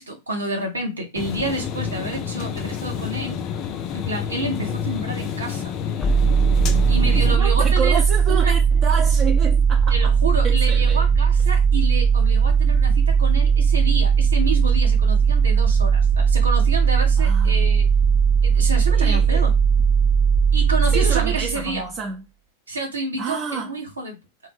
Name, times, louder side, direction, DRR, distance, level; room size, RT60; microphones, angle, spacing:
voice 1, 0.0-3.4 3.9-5.7 6.9-8.0 8.3-8.5 9.9-17.9 18.4-19.5 20.5-21.9 22.7-24.2, right 2 dB, 75° right, 0.7 m, -29 dB
sound 1, 1.1-7.4, left 8 dB, 35° left, 0.3 m, -29 dB
sound 2, 6.0-21.8, right 6 dB, 5° left, 0.7 m, -18 dB
voice 2, 7.1-10.1 10.4-11.0 17.2-17.6 18.9-19.4 20.9-22.2 23.2-23.7, right 5 dB, 30° right, 0.5 m, -29 dB
2.3 x 2.0 x 3.2 m
figure-of-eight pair, 90°, 0 cm